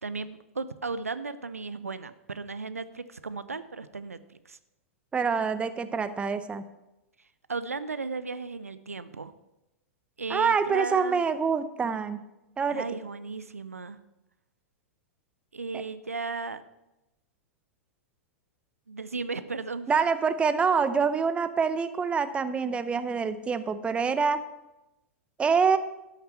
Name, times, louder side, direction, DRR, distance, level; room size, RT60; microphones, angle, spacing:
voice 1, 0.0-4.2 4.5-4.6 7.5-9.3 10.2-11.2 12.7-14.0 15.5-16.6 18.9-19.9, right 4 dB, 85° right, 14 dB, 0.6 m, -35 dB
voice 2, 5.1-6.7 10.3-12.2 12.6-12.8 19.9-24.4 25.4-25.8, right 5 dB, 15° right, 12 dB, 0.6 m, -26 dB
12.0 x 6.7 x 5.7 m, 0.96 s
figure-of-eight pair, 100°, 8 cm